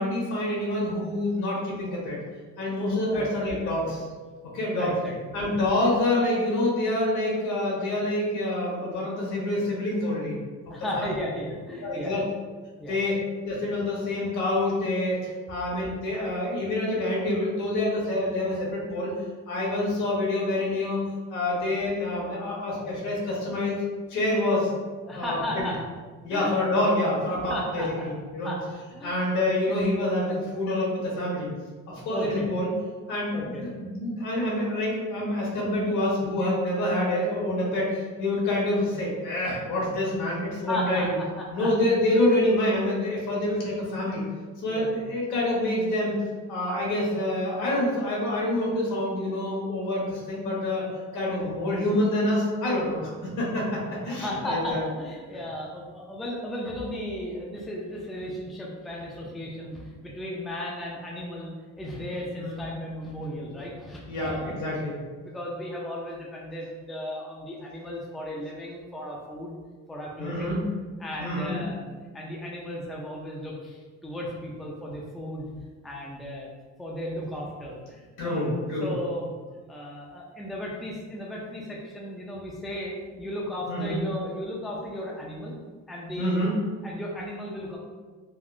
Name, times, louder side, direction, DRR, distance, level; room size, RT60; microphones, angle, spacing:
voice 1, 0.0-2.2 2.6-4.0 4.5-4.9 5.3-10.4 10.7-11.1 11.8-12.2 12.9-13.2 13.4-19.1 19.5-21.0 21.3-23.7 24.1-24.7 25.1-25.7 26.2-28.5 29.0-31.5 31.9-32.7 33.1-41.1 41.5-44.2 44.6-46.2 46.5-50.8 51.1-53.0 53.4-54.8 62.4-62.6 64.1-65.0 70.2-70.6 71.2-71.6 78.2-78.9 83.7-84.0 86.2-86.5, left 1 dB, 80° left, -4 dB, 1.2 m, -27 dB
voice 2, 4.7-5.2 10.7-12.1 12.8-12.9 25.1-25.8 26.3-26.5 27.5-28.0 28.4-28.6 29.0-29.3 32.1-32.5 33.3-33.6 40.7-41.1 41.6-41.7 44.7-45.0 51.4-51.5 54.1-64.6 65.2-69.6 69.9-70.5 71.0-71.9 72.1-75.5 75.8-76.5 76.8-79.3 79.7-85.5 85.9-86.4 86.8-87.8, left 1 dB, ahead, -3 dB, 0.3 m, -35 dB
3.5 x 2.3 x 2.4 m, 1.4 s
cardioid pair, 140°, 29 cm